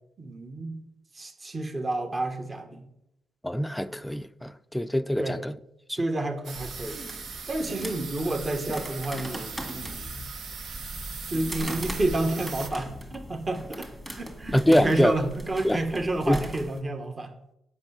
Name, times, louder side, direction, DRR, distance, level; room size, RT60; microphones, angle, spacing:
voice 1, 0.2-0.8 1.1-2.9 5.2-5.4 6.0-7.0 7.5-10.2 11.3-13.9 14.2-17.3, right 2 dB, 30° right, 1.4 m, -30 dB
voice 2, 3.4-5.5 5.9-6.0 14.5-15.1 15.6-15.8 16.3-16.4, equal, 5° left, 0.5 m, -24 dB
sound 1, 6.4-12.7, right 5 dB, 65° right, 1.1 m, -39 dB
sound 2, 6.5-16.8, equal, 10° right, 1.9 m, -39 dB
7.9 x 5.6 x 7.2 m
cardioid pair, 85°, 0 cm